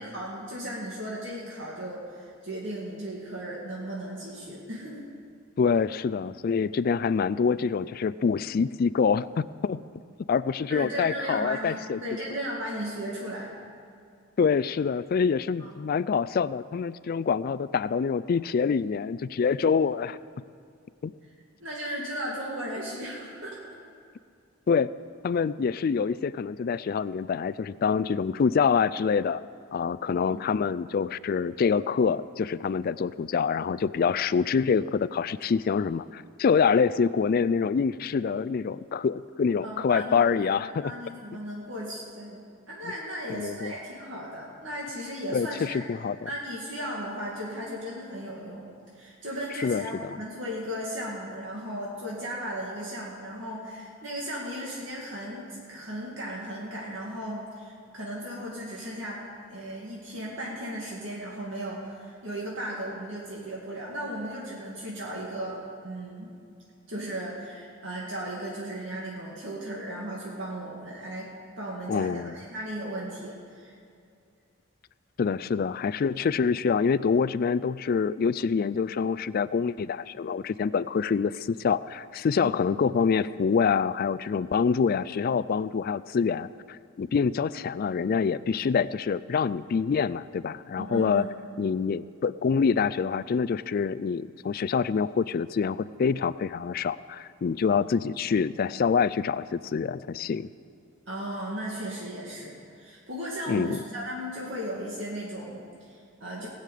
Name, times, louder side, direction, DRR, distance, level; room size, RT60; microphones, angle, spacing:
voice 1, 0.0-5.0 10.7-13.5 15.6-15.8 21.6-23.7 30.1-30.4 39.6-42.4 42.7-45.8 46.3-48.7 48.9-59.2 59.5-66.3 66.9-71.3 71.6-73.7 82.4-82.5 90.8-91.3 101.1-106.5, equal, 60° right, -5 dB, 2.3 m, -36 dB
voice 2, 5.6-9.8 10.3-12.0 14.4-20.2 21.0-21.1 24.7-24.9 25.2-29.4 29.7-40.9 43.3-43.7 45.3-46.2 49.6-50.1 71.9-72.3 75.2-86.5 87.0-91.3 91.6-100.5 103.5-103.8, left 6 dB, 45° left, 16 dB, 0.3 m, -26 dB
19.5 x 6.6 x 8.4 m, 2.4 s
head